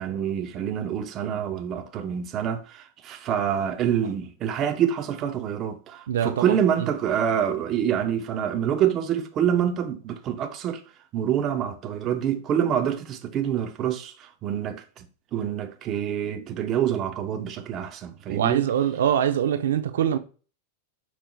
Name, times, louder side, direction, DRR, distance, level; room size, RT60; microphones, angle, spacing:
voice 1, 0.0-10.8 11.1-15.1 15.3-18.6, right 9 dB, 25° right, 0.5 m, -26 dB
voice 2, 6.1-6.9 18.3-20.2, right 9 dB, 85° right, 0.5 m, -24 dB
5.3 x 4.4 x 2.2 m
supercardioid pair, 165°, 0 cm